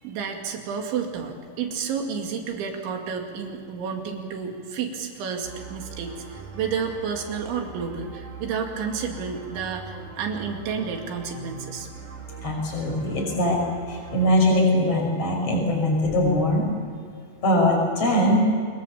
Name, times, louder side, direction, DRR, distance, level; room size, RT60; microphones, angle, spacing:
voice 1, 0.0-11.9, right 6 dB, 75° right, 3 dB, 4.6 m, -31 dB
sound 1, 5.4-14.3, right 4 dB, 35° right, 4.5 m, -41 dB
voice 2, 12.4-13.6 13.9-16.7 17.4-18.5, left 1 dB, 30° left, 1 dB, 6.6 m, -21 dB
25.5 x 22.5 x 7.1 m, 2.2 s
omnidirectional pair, 5.5 m